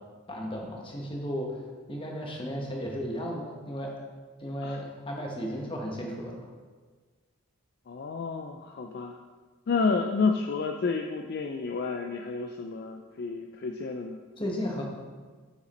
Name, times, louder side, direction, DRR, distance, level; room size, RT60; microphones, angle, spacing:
voice 1, 0.3-3.9 4.4-6.5 14.4-14.8, equal, 25° left, 0 dB, 1.1 m, -34 dB
voice 2, 7.9-9.2 9.7-14.2, left 4 dB, 45° left, 3 dB, 0.3 m, -30 dB
6.5 x 6.0 x 4.2 m, 1.4 s
head